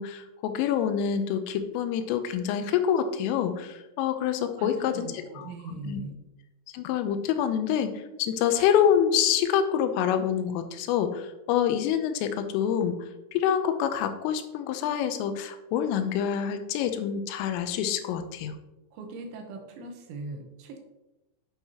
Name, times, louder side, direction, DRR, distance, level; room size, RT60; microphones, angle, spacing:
voice 1, 0.0-5.1 5.4-6.0 6.7-13.0 13.3-18.5, left 9 dB, 85° left, 8 dB, 3.3 m, -26 dB
voice 2, 4.6-6.1 18.9-20.8, right 3 dB, 75° right, 4 dB, 3.3 m, -40 dB
9.1 x 7.9 x 2.9 m, 0.97 s
omnidirectional pair, 5.7 m